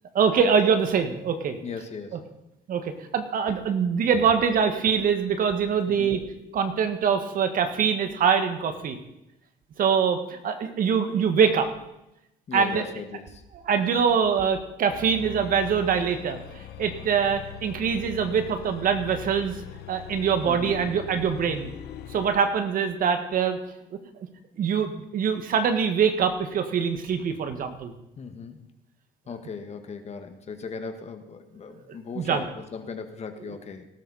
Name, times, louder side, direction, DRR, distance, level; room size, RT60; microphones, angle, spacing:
voice 1, 0.1-1.6 2.7-2.8 3.1-6.2 6.5-9.0 9.8-11.7 12.5-12.8 13.6-16.4 16.8-19.5 19.9-21.7 22.1-23.6 24.6-27.9 32.2-32.4, right 6 dB, 55° right, 7 dB, 1.9 m, -23 dB
voice 2, 1.6-2.2 5.9-6.1 12.5-13.4 20.4-20.8 28.2-28.6 29.3-33.9, left 5 dB, 40° left, 7 dB, 1.8 m, -38 dB
sound 1, 14.9-22.4, left 10 dB, 75° left, 1.2 m, -41 dB
18.5 x 13.0 x 4.3 m, 0.88 s
cardioid pair, 110°, 17 cm